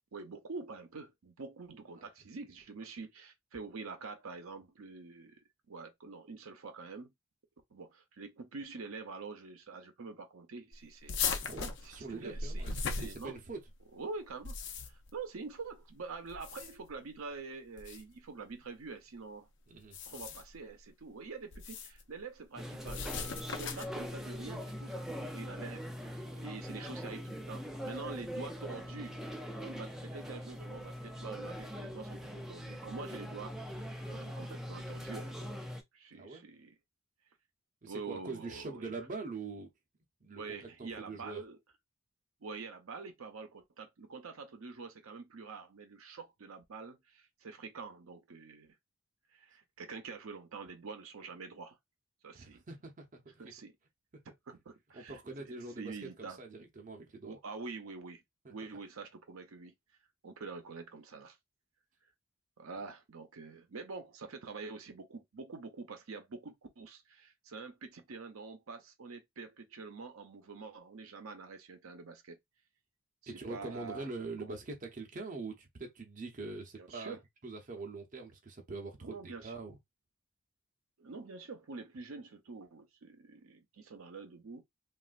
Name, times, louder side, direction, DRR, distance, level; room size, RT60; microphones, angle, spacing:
voice 1, 0.1-7.1 7.7-11.5 11.8-12.7 13.0-13.4 13.9-14.5 14.9-19.5 20.1-29.3 29.5-35.5 35.9-36.7 37.9-39.1 40.4-41.6 42.4-48.7 49.3-51.8 52.2-52.6 53.4-53.7 54.5-56.4 57.2-58.2 58.5-59.7 60.2-61.4 62.6-72.4 73.5-74.1 74.4-74.6 76.8-77.2 79.0-79.5 81.0-84.6, right 4 dB, 75° right, 0.6 m, -46 dB
sound 1, 11.1-13.7 14.3-15.1 16.3-16.9 17.8-18.0 19.8-20.6 21.5-22.0 22.8-24.0, left 5 dB, 55° left, 0.5 m, -38 dB
voice 2, 11.4-13.6 19.7-20.0 26.3-26.4 36.1-36.4 37.8-39.7 40.2-41.4 52.3-53.5 54.1-54.2 54.9-57.4 58.4-58.5 73.3-77.2 77.4-79.8, right 3 dB, 35° right, 0.6 m, -44 dB
sound 2, 22.6-35.8, equal, ahead, 0.3 m, -42 dB
3.1 x 2.4 x 2.4 m
head